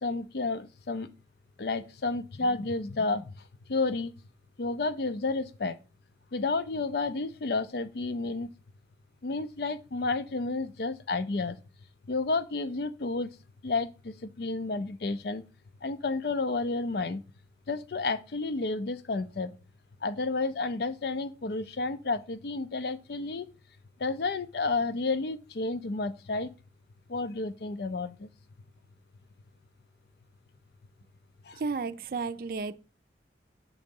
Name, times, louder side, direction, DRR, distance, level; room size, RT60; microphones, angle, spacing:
voice 1, 0.0-1.1 1.6-3.4 3.7-4.1 4.6-5.8 6.3-8.5 9.2-11.6 12.1-13.3 13.6-15.4 15.8-17.2 17.7-19.5 20.0-23.5 24.0-26.5 27.1-28.3 31.5-31.6, left 3 dB, 60° left, 0.5 m, -31 dB
voice 2, 31.6-32.7, right 4 dB, 50° right, 0.4 m, -32 dB
7.2 x 3.8 x 5.3 m
head